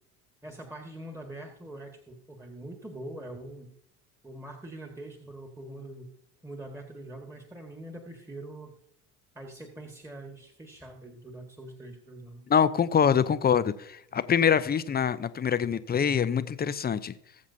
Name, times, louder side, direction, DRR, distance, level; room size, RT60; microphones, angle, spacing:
voice 1, 0.4-3.7 4.2-6.1 6.4-8.8 9.4-12.5, right 1 dB, 5° right, 1.8 m, -43 dB
voice 2, 12.5-17.1, left 7 dB, 20° left, 0.7 m, -25 dB
20.0 x 7.4 x 2.8 m
hypercardioid pair, 70°, 46 cm